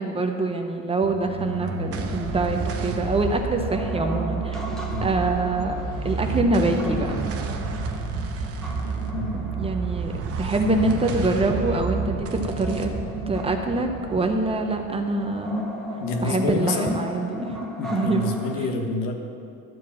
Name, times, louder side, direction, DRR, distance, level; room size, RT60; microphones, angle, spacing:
voice 1, 0.0-4.6 5.0-5.7 6.0-7.2 9.3-10.1 10.4-12.9 13.3-15.7 16.2-17.6 17.9-18.3, right 2 dB, 20° right, 4 dB, 0.6 m, -25 dB
sound 1, 1.0-15.6, right 4 dB, 45° right, 0.9 m, -30 dB
sound 2, 1.4-18.5, right 1 dB, ahead, 1.0 m, -36 dB
voice 2, 16.0-17.0 17.8-19.1, left 3 dB, 85° left, 3 dB, 1.4 m, -27 dB
12.5 x 4.8 x 7.2 m, 2.5 s
cardioid pair, 150°, 33 cm